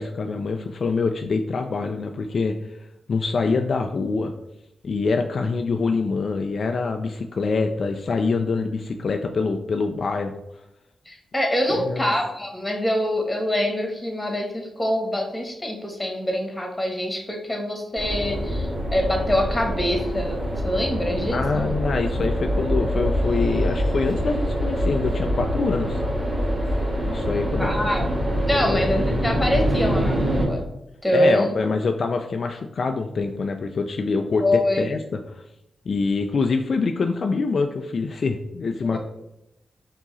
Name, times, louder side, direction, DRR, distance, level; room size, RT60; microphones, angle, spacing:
voice 1, 0.0-2.8 3.1-4.3 4.8-10.3 11.7-12.1 21.3-26.0 27.1-27.9 28.6-28.9 31.1-35.0 35.3-35.4 35.9-39.0, left 4 dB, 60° left, 5 dB, 0.3 m, -25 dB
voice 2, 11.1-20.4 20.6-21.7 27.6-28.1 28.5-30.6 31.0-31.5 34.4-34.8 38.9-39.0, left 1 dB, 15° left, 2 dB, 1.3 m, -24 dB
sound 1, 18.0-30.5, equal, 55° right, 1.7 m, -25 dB
4.7 x 2.9 x 4.0 m, 0.87 s
cardioid pair, 60°, 0 cm